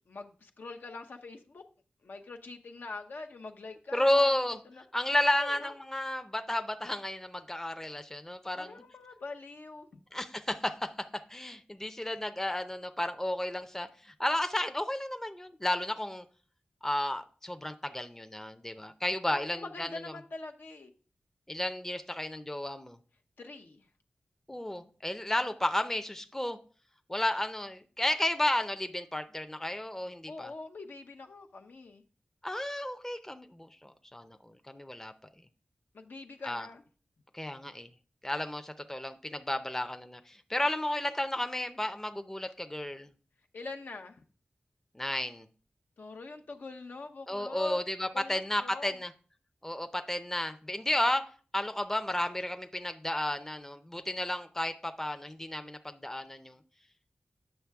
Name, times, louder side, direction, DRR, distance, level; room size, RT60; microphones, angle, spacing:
voice 1, 0.1-1.7 2.0-4.4 4.7-4.8 5.4-5.7 8.6-10.0 19.3-20.9 23.4-23.9 30.3-32.0 35.9-36.8 43.5-44.2 46.0-47.8 48.1-49.0, left 3 dB, 70° left, 0.8 m, -44 dB
voice 2, 3.9-4.6 4.9-8.8 10.1-16.3 16.8-20.0 21.5-23.0 24.5-26.6 27.1-30.5 32.4-35.1 36.4-36.7 37.3-37.9 38.2-43.1 44.9-45.5 47.3-49.1 49.6-56.6, left 1 dB, 10° left, 0.6 m, -32 dB
8.9 x 6.5 x 3.5 m
wide cardioid pair, 85°, 4 cm